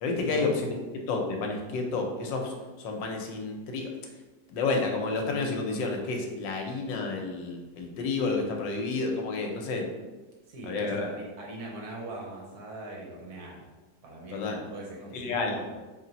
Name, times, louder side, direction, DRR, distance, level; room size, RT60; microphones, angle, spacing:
voice 1, 0.0-0.8 1.0-3.9 4.5-9.9 10.6-11.1 14.3-14.6 15.1-15.6, left 3 dB, 80° left, 2 dB, 1.3 m, -30 dB
voice 2, 10.5-13.7 14.0-15.7, right 1 dB, 65° right, -2 dB, 1.1 m, -41 dB
3.3 x 3.0 x 3.9 m, 1.2 s
omnidirectional pair, 2.0 m